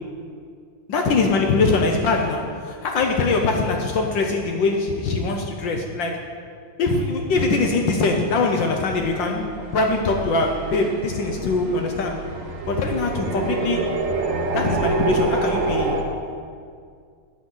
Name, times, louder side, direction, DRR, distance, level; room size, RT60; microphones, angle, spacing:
voice 1, 0.9-6.2 6.8-12.2 12.7-13.9 14.5-16.1, left 3 dB, 70° left, 2 dB, 1.5 m, -22 dB
sound 1, 8.9-16.0, right 3 dB, 85° right, 1.9 m, -27 dB
13.0 x 8.9 x 3.9 m, 2.2 s
omnidirectional pair, 2.3 m